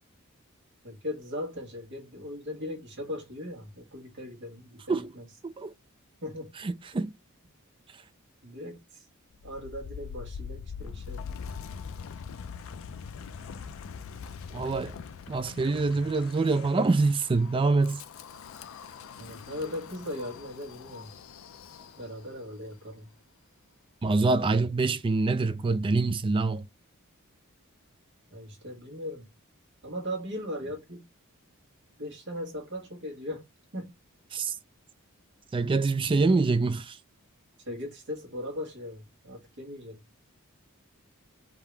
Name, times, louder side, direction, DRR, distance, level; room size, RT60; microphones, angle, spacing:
voice 1, 0.8-5.2 6.2-6.5 8.4-9.1 9.4-11.3 19.2-21.1 22.0-23.1 28.3-29.3 29.8-31.0 32.0-33.4 33.7-33.9 37.6-40.0, left 1 dB, 55° right, 1.6 m, -38 dB
voice 2, 6.6-7.1 14.5-15.0 15.3-18.0 24.0-26.7 34.3-34.6 35.5-37.0, right 3 dB, 25° right, 0.3 m, -25 dB
Wind, 9.3-22.3, left 6 dB, 70° left, 0.4 m, -43 dB
3.7 x 2.8 x 4.5 m
head